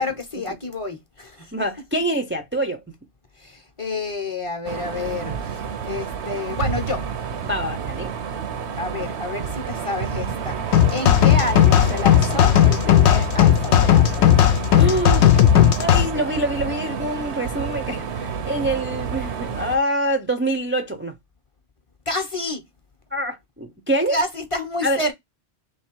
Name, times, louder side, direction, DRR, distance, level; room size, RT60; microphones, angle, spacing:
voice 1, 0.0-1.5 3.4-7.1 8.8-14.3 22.1-22.6 24.1-25.1, left 2 dB, 35° left, 0.8 m, -29 dB
voice 2, 1.5-2.8 7.4-8.1 14.7-15.3 15.8-21.1 23.1-24.2 24.8-25.0, right 1 dB, 20° right, 0.4 m, -25 dB
sound 1, 4.6-19.8, right 7 dB, 80° right, 1.0 m, -29 dB
sound 2, 10.7-16.1, left 11 dB, 85° left, 0.9 m, -15 dB
3.3 x 3.1 x 4.3 m
omnidirectional pair, 1.1 m